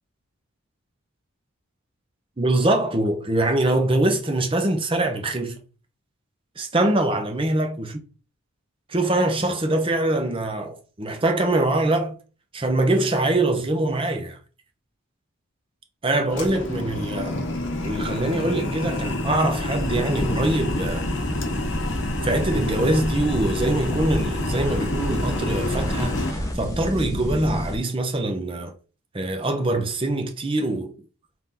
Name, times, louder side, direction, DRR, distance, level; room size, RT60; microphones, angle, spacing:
voice 1, 2.4-5.6 6.6-7.9 8.9-12.2 12.5-14.4 16.0-17.4 17.8-21.1 22.2-28.7 29.1-30.9, right 2 dB, 25° right, 0.6 m, -23 dB
sound 1, 16.3-26.3, left 1 dB, 55° left, 0.8 m, -28 dB
sound 2, 19.7-27.8, equal, 15° left, 0.6 m, -30 dB
3.8 x 2.9 x 3.7 m
head